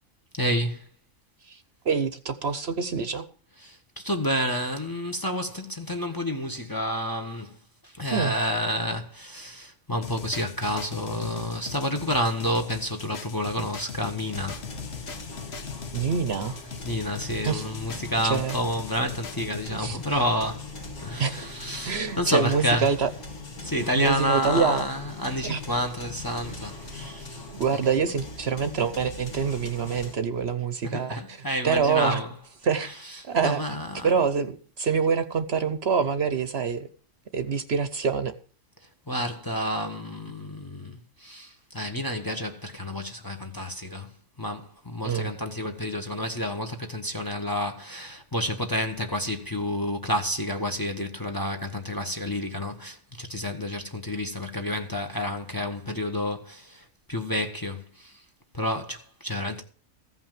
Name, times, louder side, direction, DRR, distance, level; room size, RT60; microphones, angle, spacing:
voice 1, 0.3-0.9 3.6-7.6 7.8-14.6 16.8-20.8 21.0-22.9 23.6-27.4 27.7-27.8 30.8-32.3 33.4-34.1 39.1-44.1 44.4-58.2 58.5-59.6, equal, 15° left, 1.0 m, -29 dB
voice 2, 1.4-3.3 8.1-8.3 15.9-16.6 17.4-17.7 18.2-18.6 19.7-20.0 21.2-21.5 21.8-23.1 24.0-24.8 25.4-25.6 26.4-26.6 27.5-32.2 32.6-32.9 33.3-33.6 34.0-36.9 37.3-38.3 45.0-45.3, right 6 dB, 55° right, 1.0 m, -26 dB
sound 1, 10.0-19.7, left 6 dB, 55° left, 1.2 m, -40 dB
sound 2, 14.2-30.2, left 2 dB, 70° left, 2.2 m, -41 dB
15.0 x 5.7 x 7.4 m
omnidirectional pair, 1.4 m